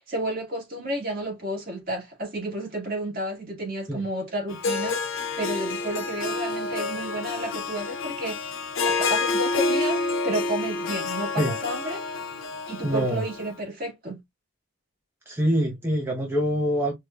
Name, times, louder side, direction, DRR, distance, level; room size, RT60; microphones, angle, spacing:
voice 1, 0.1-8.6 8.8-12.0 12.7-14.2, right 1 dB, 45° right, 1.8 m, -31 dB
Harp, 4.5-13.5, left 3 dB, 65° left, 0.5 m, -28 dB
voice 2, 12.8-13.2 15.3-16.9, equal, 10° right, 0.7 m, -24 dB
4.6 x 2.5 x 2.2 m
head